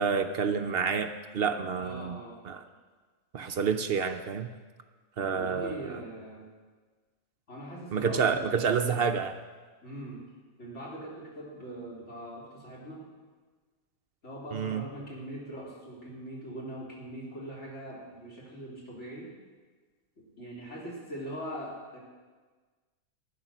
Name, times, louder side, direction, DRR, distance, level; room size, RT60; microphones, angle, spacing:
voice 1, 0.0-2.6 3.3-4.5 5.2-6.0 7.9-9.4 14.5-14.8, right 6 dB, 60° right, 8 dB, 0.7 m, -29 dB
voice 2, 1.8-2.3 5.3-6.4 7.5-8.5 9.8-10.2 10.6-13.0 14.2-19.3 20.2-22.0, equal, 55° left, -5 dB, 3.5 m, -41 dB
11.5 x 9.6 x 6.1 m, 1.4 s
omnidirectional pair, 1.4 m